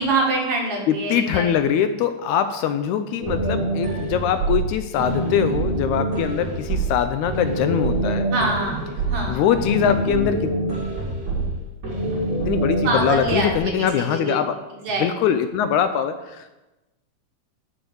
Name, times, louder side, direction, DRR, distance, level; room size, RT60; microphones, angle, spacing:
voice 1, 0.0-1.8 8.3-9.4 12.8-14.4 14.8-15.1, right 2 dB, 55° right, -1 dB, 2.4 m, -25 dB
voice 2, 0.9-8.3 9.3-10.5 12.5-14.5 15.0-16.5, left 9 dB, 80° left, 9 dB, 1.8 m, -22 dB
sound 1, 3.2-13.6, right 2 dB, 35° right, 3.2 m, -25 dB
7.3 x 7.0 x 7.0 m, 1.0 s
omnidirectional pair, 3.6 m